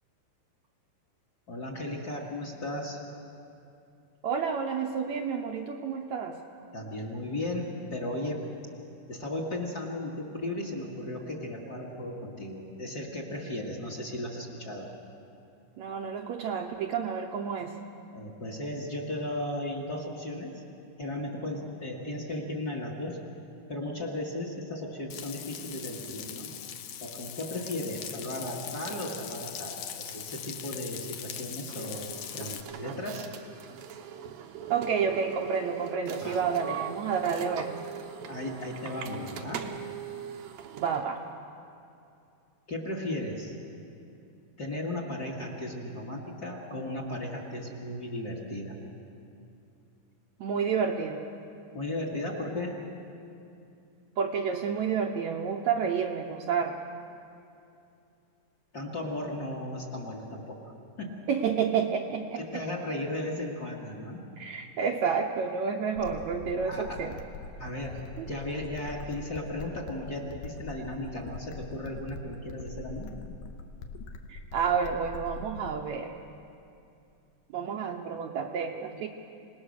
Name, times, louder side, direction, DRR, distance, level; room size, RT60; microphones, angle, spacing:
voice 1, 1.5-3.0 6.7-7.7 7.9-8.4 9.1-14.9 18.1-20.6 21.0-23.2 23.7-26.5 27.0-33.3 36.2-36.4 38.3-39.6 42.7-43.5 44.6-48.8 51.7-52.8 58.7-60.6 61.0-61.2 62.4-64.2 66.6-67.0 67.6-68.0 68.3-73.2, left 1 dB, 35° left, -1 dB, 2.0 m, -35 dB
voice 2, 4.2-6.4 15.8-17.8 34.7-37.7 40.8-41.3 50.4-51.2 54.2-56.8 61.3-62.6 64.4-67.1 68.2-68.3 74.3-76.1 77.5-79.1, right 6 dB, 70° right, 2 dB, 1.8 m, -30 dB
Frying (food), 25.1-32.6, left 9 dB, 70° left, 1.8 m, -41 dB
sound 1, 31.7-41.1, right 9 dB, 90° right, 2.8 m, -41 dB
sound 2, 66.0-76.0, left 3 dB, 90° left, 2.7 m, -43 dB
27.0 x 19.0 x 6.5 m, 2.6 s
omnidirectional pair, 4.0 m